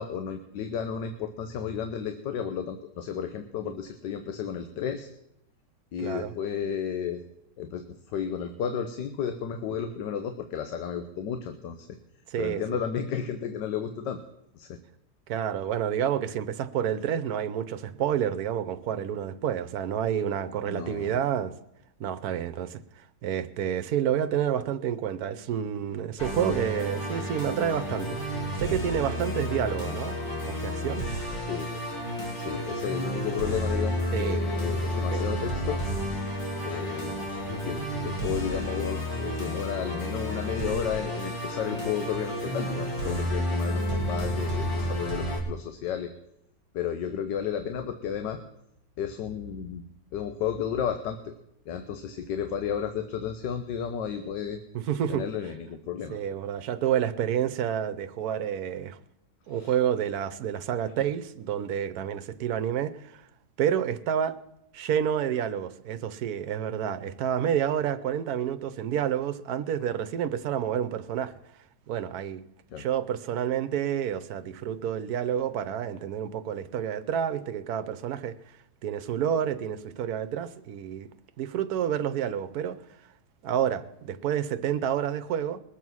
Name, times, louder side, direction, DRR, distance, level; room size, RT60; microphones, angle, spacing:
voice 1, 0.0-5.1 5.9-7.2 7.6-12.0 12.4-14.2 14.5-14.8 20.7-21.2 31.4-31.7 32.3-35.8 36.6-46.1 46.7-48.4 49.0-49.8 50.1-51.3 51.7-54.6 55.1-56.2 59.5-59.7 72.7-72.8, left 8 dB, 75° left, 1.5 m, -33 dB
voice 2, 6.0-6.3 12.3-12.8 15.3-21.5 22.0-22.8 23.2-28.2 28.6-30.2 30.4-31.0 34.1-34.4 35.1-35.2 54.7-55.2 56.1-59.0 59.5-63.2 63.6-64.4 64.7-71.3 71.9-72.4 72.8-78.4 78.8-81.1 81.4-82.8 83.4-85.6, right 9 dB, 65° right, 1.2 m, -29 dB
Musical instrument, 26.2-45.4, equal, 40° left, 3.4 m, -31 dB
21.0 x 7.3 x 6.2 m
omnidirectional pair, 1.9 m